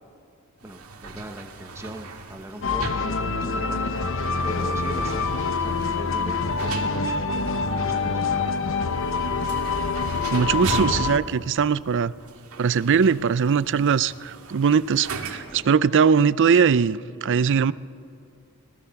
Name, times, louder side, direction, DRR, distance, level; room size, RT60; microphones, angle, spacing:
voice 1, 0.6-3.9 4.4-8.8, right 1 dB, 10° right, 4 dB, 0.9 m, -40 dB
sound 1, 0.6-15.7, right 3 dB, 75° right, 2.1 m, -39 dB
sound 2, 2.6-11.2, left 4 dB, 65° left, 1.0 m, -26 dB
voice 2, 10.3-12.1 12.6-17.7, right 6 dB, 60° right, 19 dB, 0.5 m, -20 dB
26.0 x 19.0 x 5.8 m, 2.6 s
head